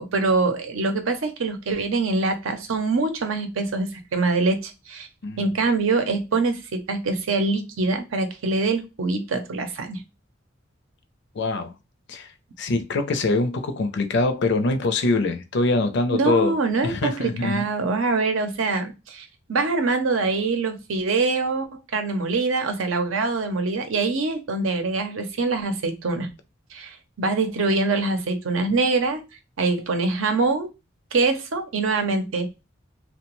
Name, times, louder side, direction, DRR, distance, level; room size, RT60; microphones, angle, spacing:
voice 1, 0.0-5.1 5.4-10.0 16.1-26.3 26.7-29.2 29.6-30.7 31.1-32.5, right 3 dB, 85° right, 0.6 m, -24 dB
voice 2, 11.3-11.7 12.1-12.3 12.6-16.5 16.8-17.6, left 2 dB, 60° left, 0.5 m, -23 dB
2.9 x 2.1 x 3.0 m
head